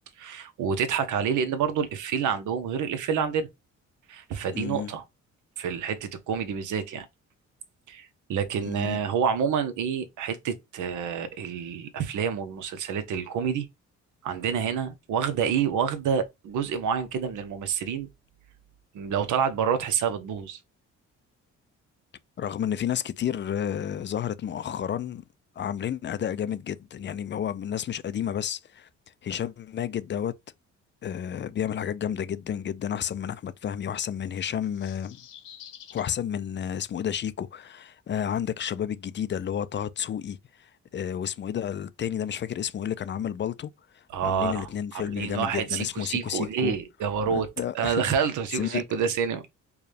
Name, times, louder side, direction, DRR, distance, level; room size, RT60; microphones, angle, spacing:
voice 1, 0.2-3.5 4.1-5.0 5.6-7.1 7.9-13.7 14.2-18.1 18.9-20.6 44.1-44.7 44.9-47.5 47.7-49.4, right 7 dB, 80° right, 0.9 m, -28 dB
voice 2, 4.5-4.9 8.6-9.0 22.4-25.2 25.6-28.9 29.2-30.3 31.0-35.2 35.9-46.8 47.3-48.8, left 9 dB, 40° left, 0.4 m, -31 dB
sound 1, 34.3-36.1, left 9 dB, 85° left, 1.0 m, -48 dB
4.7 x 2.3 x 3.3 m
cardioid pair, 90°, 30 cm